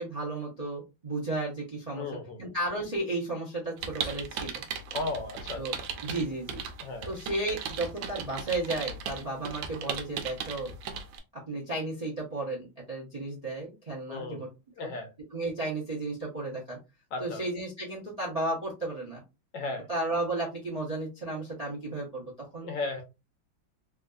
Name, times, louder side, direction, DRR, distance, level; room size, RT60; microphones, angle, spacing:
voice 1, 0.0-2.1 2.4-4.6 5.6-6.6 7.0-10.7 11.3-14.5 14.8-14.9 15.3-16.8 17.2-19.2 19.9-22.7, right 2 dB, 35° right, 0.6 m, -33 dB
voice 2, 2.0-2.4 4.9-5.6 6.8-7.1 14.1-14.4 14.8-15.1 17.1-17.4 19.5-19.9 22.6-23.0, left 3 dB, 70° left, 1.2 m, -35 dB
sound 1, 3.8-11.2, right 6 dB, 70° right, 1.3 m, -37 dB
3.5 x 2.6 x 2.3 m
omnidirectional pair, 2.3 m